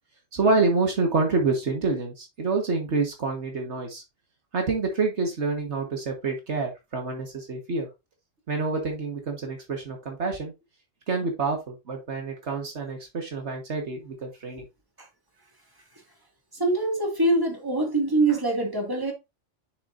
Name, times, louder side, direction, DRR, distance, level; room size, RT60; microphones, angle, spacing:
voice 1, 0.3-4.0 4.5-7.9 8.5-10.5 11.1-14.6, right 3 dB, 65° right, 1.8 m, -27 dB
voice 2, 16.5-19.1, right 2 dB, 20° right, 2.2 m, -24 dB
6.7 x 6.7 x 2.6 m
omnidirectional pair, 1.2 m